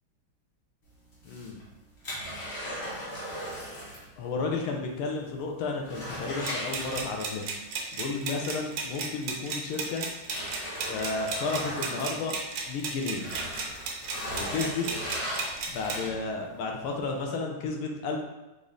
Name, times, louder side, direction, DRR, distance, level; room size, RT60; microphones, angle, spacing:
sound 1, 1.1-4.1 4.4-4.5 5.0-5.1 5.4-7.4 8.9-9.0 9.6-12.7 13.1-16.4 16.9-17.0, equal, 40° left, 1.2 m, -37 dB
voice 1, 1.2-1.6 4.2-7.5 7.9-10.0 10.9-12.3 12.7-13.2 14.3-14.9 15.7-18.2, left 4 dB, 85° left, 1 dB, 1.6 m, -32 dB
sound 2, 6.4-16.0, right 4 dB, 85° right, 1.6 m, -35 dB
5.0 x 2.6 x 3.7 m, 1.0 s
omnidirectional pair, 2.3 m